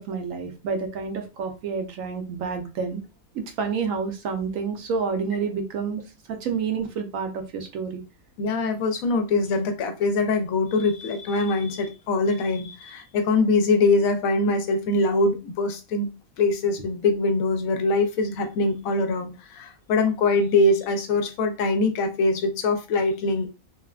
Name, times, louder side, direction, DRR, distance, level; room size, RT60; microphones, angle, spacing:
voice 1, 0.0-3.0 3.3-6.0 6.3-8.0, right 5 dB, 75° right, 6 dB, 0.9 m, -29 dB
voice 2, 8.4-16.1 16.4-23.5, left 3 dB, 75° left, 7 dB, 1.0 m, -23 dB
3.3 x 2.1 x 2.3 m, 0.30 s
omnidirectional pair, 1.5 m